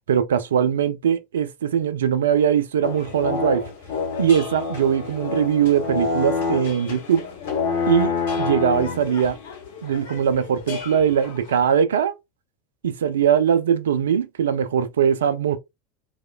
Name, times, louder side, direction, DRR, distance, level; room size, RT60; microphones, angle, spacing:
voice 1, 0.1-3.6 4.2-7.3 7.9-9.4 9.8-12.1 12.8-15.6, right 8 dB, 70° right, 0.3 m, -21 dB
sound 1, 2.8-11.7, left 4 dB, 60° left, 0.7 m, -28 dB
3.0 x 2.1 x 2.2 m
figure-of-eight pair, 75°, 0 cm